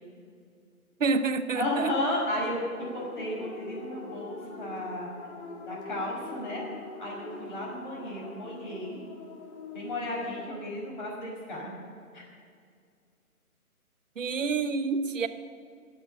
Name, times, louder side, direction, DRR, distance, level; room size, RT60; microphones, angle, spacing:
voice 1, 1.0-1.9 14.2-15.3, right 4 dB, 55° right, 10 dB, 1.0 m, -28 dB
voice 2, 1.6-2.6 2.9-5.1 5.7-6.7 7.0-9.0 9.7-11.8 12.1-12.2, left 1 dB, 35° left, -2 dB, 5.4 m, -33 dB
sound 1, 2.7-10.4, left 3 dB, 50° left, 2.7 m, -43 dB
22.0 x 8.0 x 7.4 m, 2.2 s
hypercardioid pair, 160°, 45 cm